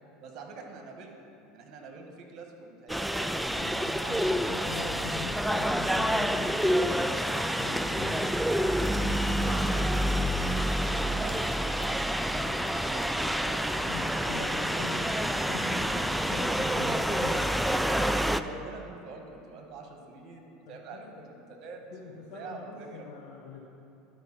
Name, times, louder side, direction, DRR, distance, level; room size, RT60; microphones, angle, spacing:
voice 1, 0.2-3.4 3.8-4.3 9.5-13.8 14.1-14.2 14.7-14.9 18.1-23.1, right 3 dB, 45° right, 2 dB, 1.5 m, -46 dB
sound 1, 2.9-18.4, equal, ahead, 0.3 m, -28 dB
voice 2, 3.5-8.3 8.9-9.7 13.7-15.1 15.5-17.5 20.7-21.3 21.9-23.6, left 4 dB, 60° left, -3 dB, 1.1 m, -42 dB
11.5 x 4.6 x 6.1 m, 2.9 s
hypercardioid pair, 80°, 0 cm